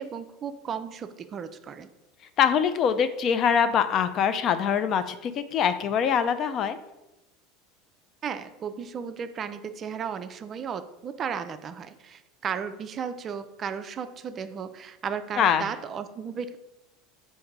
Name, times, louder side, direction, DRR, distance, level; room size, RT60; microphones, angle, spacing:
voice 1, 0.0-1.9 8.2-16.6, right 7 dB, 35° right, 10 dB, 0.3 m, -35 dB
voice 2, 2.4-6.8 15.4-15.7, left 7 dB, 45° left, 11 dB, 0.3 m, -23 dB
3.7 x 2.6 x 4.6 m, 0.99 s
supercardioid pair, 105°, 0 cm